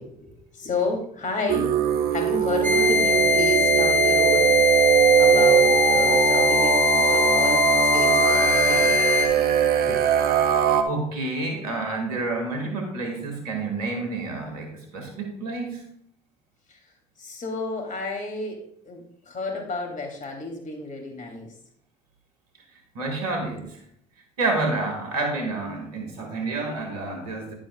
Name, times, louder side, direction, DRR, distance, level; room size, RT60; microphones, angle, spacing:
voice 1, 0.0-1.8 2.1-4.5 5.2-8.9 9.9-10.0 16.7-16.9 17.2-18.6 18.8-21.5, left 3 dB, 45° left, 2 dB, 3.1 m, -31 dB
sound 1, 1.5-10.8, right 9 dB, 55° right, 0.9 m, -21 dB
sound 2, 2.6-9.3, left 5 dB, 10° left, 1.4 m, -21 dB
voice 2, 10.8-15.8 22.7-23.8 24.4-27.5, right 3 dB, 85° right, 4 dB, 2.1 m, -29 dB
10.5 x 8.8 x 2.4 m, 0.71 s
hypercardioid pair, 55°, 19 cm